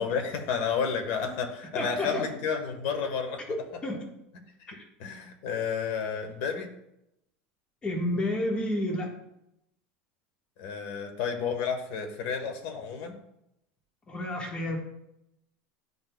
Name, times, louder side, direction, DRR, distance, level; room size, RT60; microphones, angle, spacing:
voice 1, 0.0-3.4 4.6-4.7 5.0-6.7 10.6-13.2, left 6 dB, 65° left, 5 dB, 1.3 m, -31 dB
voice 2, 1.7-2.3 3.5-4.0 4.7-4.8 7.8-9.1 14.1-14.8, left 1 dB, 20° left, 0 dB, 1.3 m, -30 dB
10.5 x 4.1 x 2.3 m, 0.81 s
supercardioid pair, 130°, 5 cm